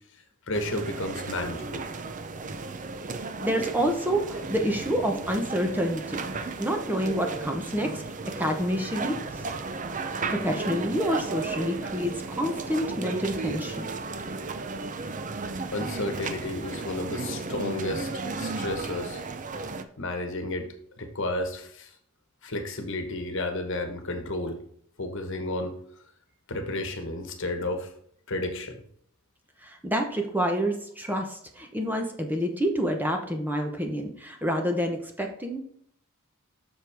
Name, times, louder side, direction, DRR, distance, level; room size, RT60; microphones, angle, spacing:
voice 1, 0.5-1.8 15.7-18.1 18.4-19.2 20.0-20.7 21.0-21.9 22.4-24.6 25.0-25.8 26.5-27.9 28.3-28.8, left 2 dB, 60° left, 6 dB, 1.2 m, -32 dB
sound 1, 0.5-19.8, right 3 dB, 35° right, 0.6 m, -34 dB
voice 2, 3.4-9.4 10.3-13.9 29.6-35.6, equal, 10° right, 3 dB, 0.9 m, -28 dB
7.4 x 6.3 x 3.5 m, 0.65 s
head